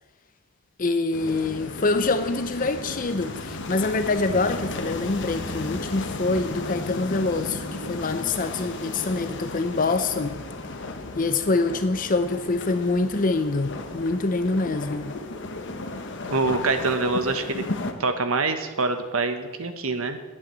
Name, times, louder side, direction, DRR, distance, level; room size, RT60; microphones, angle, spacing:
voice 1, 0.8-10.4 11.2-15.2, left 3 dB, 35° left, 10 dB, 0.6 m, -25 dB
sound 1, 1.1-17.9, left 2 dB, 55° left, 1.2 m, -34 dB
voice 2, 16.3-17.6 18.0-20.2, right 3 dB, 70° right, 7 dB, 1.3 m, -25 dB
10.5 x 8.7 x 8.4 m, 1.3 s
head